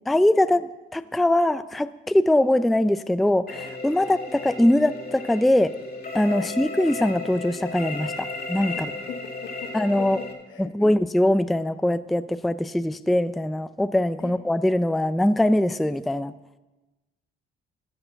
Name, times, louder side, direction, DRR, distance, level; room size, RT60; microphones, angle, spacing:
voice 1, 0.1-5.7 6.1-8.9 9.7-10.2 10.6-16.3, left 1 dB, ahead, 13 dB, 0.3 m, -22 dB
sound 1, 3.5-10.3, left 3 dB, 50° left, 2.1 m, -34 dB
voice 2, 8.7-9.7 10.0-11.0 14.2-14.3, left 8 dB, 75° left, 7 dB, 1.3 m, -42 dB
15.0 x 6.7 x 6.9 m, 1.1 s
cardioid pair, 90°, 20 cm